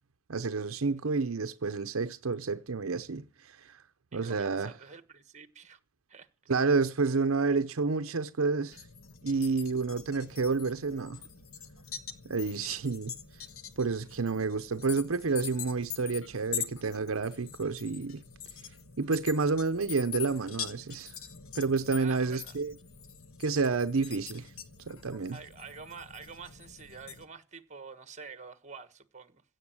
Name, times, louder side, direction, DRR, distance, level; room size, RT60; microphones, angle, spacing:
voice 1, 0.3-3.7 4.1-4.7 6.5-8.8 9.2-11.2 12.2-13.2 13.8-18.2 19.0-21.1 21.6-22.7 23.4-24.5 24.9-25.4, right 4 dB, 75° right, 0.7 m, -29 dB
voice 2, 4.1-5.8 6.1-6.3 22.0-22.6 25.3-29.4, right 5 dB, 35° right, 1.4 m, -47 dB
sound 1, 8.7-27.3, left 8 dB, 75° left, 1.3 m, -44 dB
16.0 x 8.0 x 8.7 m
head